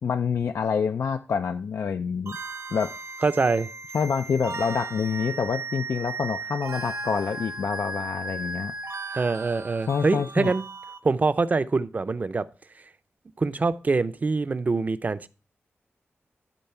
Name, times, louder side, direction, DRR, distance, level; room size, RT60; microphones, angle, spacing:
voice 1, 0.0-2.3 2.7-2.9 3.9-8.7 9.9-10.5, left 6 dB, 75° left, 0.4 m, -27 dB
sound 1, 2.3-11.0, right 3 dB, 75° right, 1.4 m, -36 dB
voice 2, 3.2-3.7 9.1-10.6 11.0-12.4 13.4-15.3, right 3 dB, 35° right, 0.5 m, -24 dB
12.0 x 4.1 x 5.7 m
wide cardioid pair, 140°, 5 cm